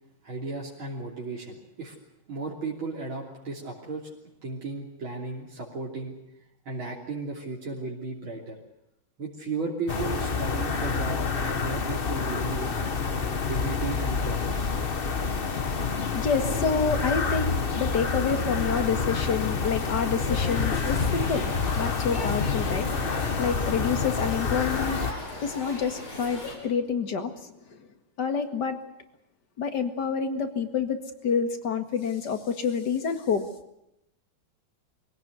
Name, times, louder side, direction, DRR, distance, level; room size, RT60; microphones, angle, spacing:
voice 1, 0.2-2.0 2.3-4.2 4.4-6.2 6.7-8.6 9.2-13.0 13.5-14.8, right 3 dB, 80° right, -3 dB, 3.9 m, -35 dB
sound 1, 9.9-25.1, left 5 dB, 35° left, 1.1 m, -28 dB
voice 2, 15.4-27.9 28.2-28.8 29.6-31.0 31.2-33.5, left 6 dB, 55° left, 7 dB, 2.5 m, -28 dB
sound 2, 20.3-26.6, left 2 dB, 90° left, 6.2 m, -39 dB
23.5 x 17.5 x 9.4 m, 0.83 s
omnidirectional pair, 2.2 m